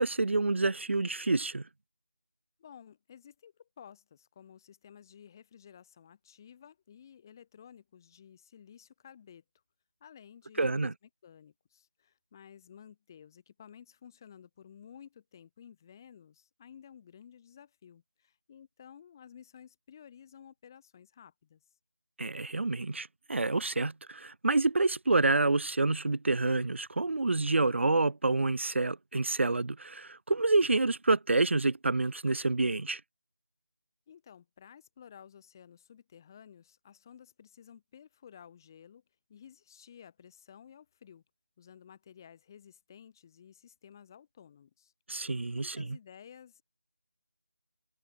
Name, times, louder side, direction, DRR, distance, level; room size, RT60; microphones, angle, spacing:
voice 1, 0.0-1.6 10.6-10.9 22.2-33.0 45.1-46.0, right 3 dB, 55° right, 0.5 m, -28 dB
voice 2, 2.6-9.4 10.0-10.9 11.2-21.6 34.1-39.0 39.3-41.2 41.6-44.9 45.5-46.6, left 8 dB, 15° left, 1.0 m, -54 dB
figure-of-eight pair, 165°, 8 cm